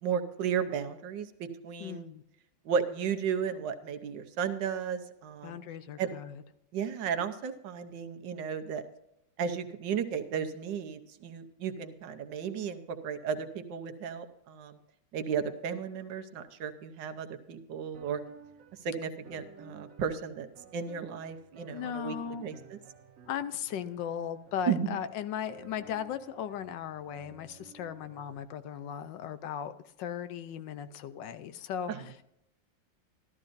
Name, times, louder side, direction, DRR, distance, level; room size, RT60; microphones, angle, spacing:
voice 1, 0.0-2.0 2.6-5.6 6.0-6.1 6.7-8.8 9.4-14.8 15.1-18.2 18.8-20.5 20.7-22.2 22.4-22.8 24.7-25.0 31.9-32.0, right 7 dB, 75° right, 7 dB, 1.5 m, -34 dB
voice 2, 1.8-2.2 5.4-6.4 21.7-22.5 23.3-29.7 30.0-32.2, left 9 dB, 80° left, 12 dB, 1.3 m, -37 dB
sound 1, 17.9-28.4, right 6 dB, 50° right, 1.6 m, -55 dB
13.5 x 13.0 x 2.6 m, 0.82 s
omnidirectional pair, 2.0 m